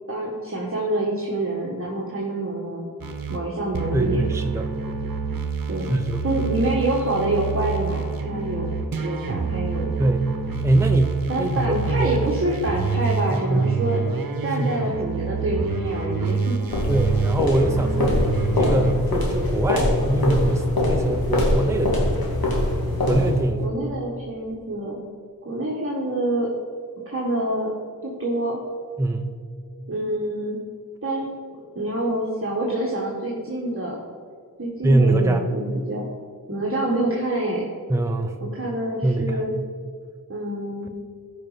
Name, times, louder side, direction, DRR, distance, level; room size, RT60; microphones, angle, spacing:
voice 1, 0.1-2.9 3.3-4.2 5.7-5.9 6.2-8.7 9.0-9.9 11.3-14.0 14.4-16.5 18.0-18.2 23.6-25.0 25.4-26.5 27.0-27.7 28.0-28.6 29.9-30.6 31.0-31.2 31.7-34.0 34.6-36.0 36.5-37.7 38.4-39.5 40.3-40.9, right 1 dB, 40° right, -3 dB, 1.6 m, -26 dB
sound 1, 3.0-3.4 3.7-18.9, right 5 dB, 75° right, 1.0 m, -27 dB
voice 2, 3.9-4.7 5.9-6.2 10.0-10.3 10.6-12.2 13.3-13.8 14.6-14.8 16.9-18.2 18.6-22.3 23.0-23.6 29.0-29.3 34.8-35.4 37.9-38.4 39.0-39.6, right 2 dB, 10° right, 5 dB, 0.6 m, -23 dB
sound 2, 16.7-23.5, left 1 dB, 85° left, 2.2 m, -23 dB
15.0 x 5.2 x 5.1 m, 2.1 s
wide cardioid pair, 75°, 35 cm